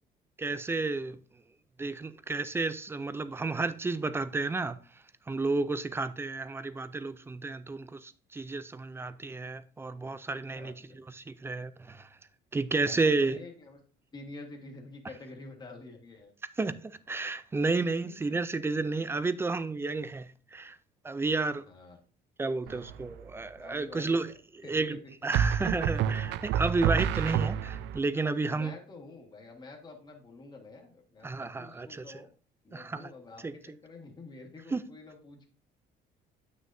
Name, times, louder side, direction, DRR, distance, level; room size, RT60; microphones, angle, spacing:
voice 1, 0.4-1.2 1.8-4.8 5.3-10.7 11.1-12.1 12.5-13.4 16.6-20.8 21.0-21.6 22.4-24.3 24.7-28.7 31.2-32.0 32.7-33.1 33.4-33.5 34.7-34.8, right 3 dB, 15° right, 0.4 m, -31 dB
voice 2, 10.5-11.1 12.8-13.8 14.1-16.3 18.0-18.3 21.6-22.0 22.6-23.0 23.3-24.4 24.6-25.0 28.5-32.3 32.6-35.5, left 3 dB, 25° left, 1.6 m, -48 dB
sound 1, 22.7-23.1 25.3-28.0, right 8 dB, 80° right, 0.5 m, -28 dB
9.2 x 6.4 x 2.6 m
cardioid pair, 155°, 18 cm